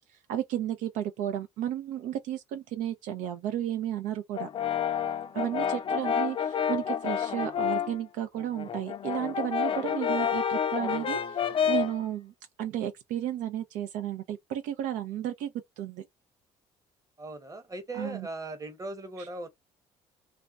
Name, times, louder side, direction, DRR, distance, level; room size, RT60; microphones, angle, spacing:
voice 1, 0.3-4.5 5.3-15.5 15.8-16.1 17.9-18.3 19.2-19.3, right 11 dB, 70° right, 0.5 m, -33 dB
Brass instrument, 4.4-8.0 8.4-12.0, left 8 dB, 40° left, 0.5 m, -29 dB
voice 2, 5.5-6.0 17.2-19.5, right 2 dB, 25° right, 1.0 m, -39 dB
2.4 x 2.2 x 2.3 m
supercardioid pair, 70°, 14 cm